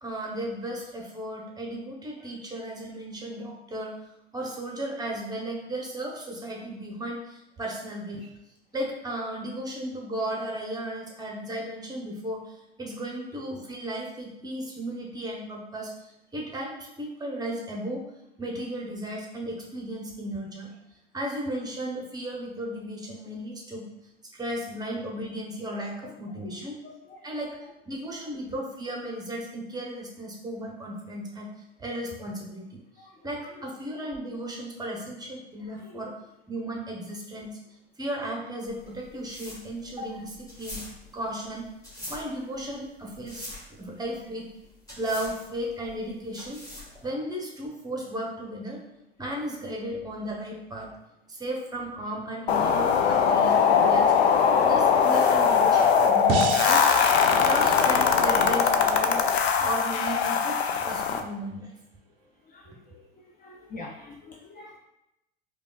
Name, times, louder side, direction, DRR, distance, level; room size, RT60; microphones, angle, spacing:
voice 1, 0.0-4.0 4.3-8.3 8.7-18.0 18.4-20.7 21.1-23.9 24.3-26.8 27.2-27.6 27.9-31.5 31.8-32.8 33.2-36.1 36.5-37.5 38.0-40.8 41.1-41.7 42.1-43.5 43.8-44.5 45.0-46.6 47.0-48.8 49.2-50.9 51.3-54.1 54.6-56.9 57.4-59.3 59.6-61.7, right 1 dB, 10° right, -1 dB, 0.8 m, -35 dB
voice 2, 26.8-27.2 33.0-33.2 35.8-36.0 62.5-63.0 63.4-64.8, left 2 dB, 30° left, 0 dB, 0.5 m, -45 dB
sound 1, 38.7-47.1, left 1 dB, 10° left, 1.3 m, -43 dB
sound 2, 52.5-61.2, left 6 dB, 80° left, 0.5 m, -21 dB
sound 3, 56.3-59.4, right 7 dB, 40° right, 0.4 m, -33 dB
5.0 x 2.3 x 2.3 m, 0.88 s
hypercardioid pair, 85°, 31 cm